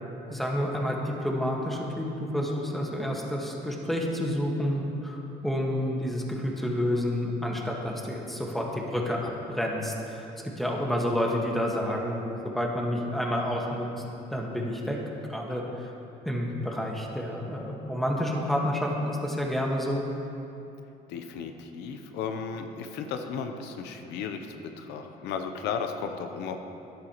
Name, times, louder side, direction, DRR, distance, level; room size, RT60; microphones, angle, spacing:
voice 1, 0.3-5.2 5.4-10.3 10.6-13.9 14.3-15.0 15.3-15.9 16.2-20.0, equal, ahead, -1 dB, 1.5 m, -29 dB
voice 2, 21.1-26.6, left 6 dB, 90° left, 6 dB, 0.7 m, -35 dB
13.0 x 11.0 x 3.0 m, 2.8 s
cardioid pair, 110°, 17 cm